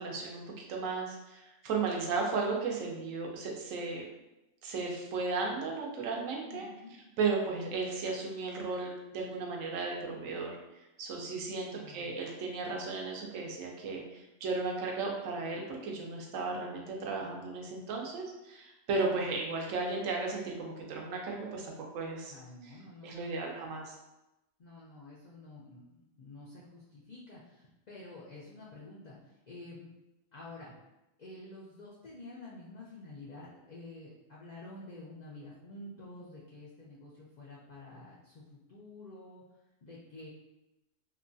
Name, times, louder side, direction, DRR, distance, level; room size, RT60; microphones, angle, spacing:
voice 1, 0.0-4.0 4.6-6.7 7.2-10.5 11.0-22.3 22.6-22.7 23.0-24.0, right 4 dB, 80° right, 0 dB, 1.0 m, -35 dB
voice 2, 6.5-7.0 11.7-12.1 22.3-23.4 24.6-29.9 30.3-30.7 31.2-39.4 39.8-40.3, left 2 dB, 85° left, -6 dB, 0.3 m, -49 dB
2.9 x 2.2 x 2.5 m, 0.95 s
omnidirectional pair, 1.4 m